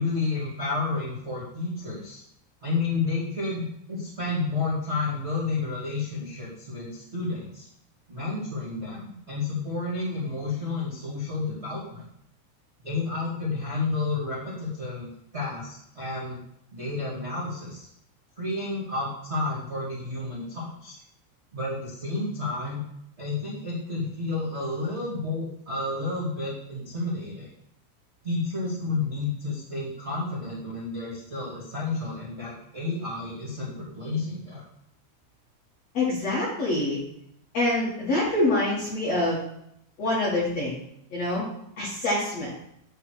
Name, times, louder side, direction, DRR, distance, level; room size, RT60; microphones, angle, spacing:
voice 1, 0.0-2.2 2.6-7.6 8.1-12.0 12.8-15.1 15.3-16.4 16.7-17.9 18.4-21.0 21.5-22.8 23.2-27.5 28.2-34.6, left 3 dB, 85° right, -6 dB, 0.6 m, -31 dB
voice 2, 35.9-37.0 37.5-39.4 40.0-40.8 41.1-41.5 41.8-42.5, left 2 dB, 60° left, -6 dB, 1.7 m, -25 dB
9.8 x 3.3 x 6.3 m, 0.75 s
omnidirectional pair, 5.4 m